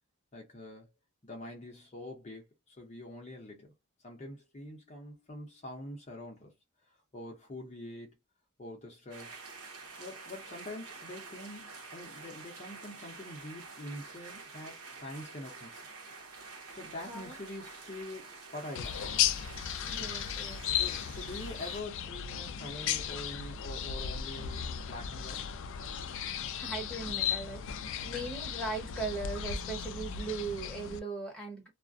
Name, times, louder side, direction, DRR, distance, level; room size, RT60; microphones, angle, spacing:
voice 1, 0.3-0.9 1.2-3.7 4.0-6.5 6.8-8.2 8.6-9.4 10.0-15.8 16.7-19.3 20.7-25.5 28.2-28.3, left 1 dB, 30° left, 0.7 m, -45 dB
sound 1, 9.1-21.8, right 4 dB, 85° right, 0.8 m, -48 dB
voice 2, 17.0-17.3 19.8-20.6 26.5-31.7, right 3 dB, 5° left, 0.9 m, -39 dB
sound 2, 18.8-31.0, left 8 dB, 60° left, 0.3 m, -35 dB
2.4 x 2.1 x 2.5 m
head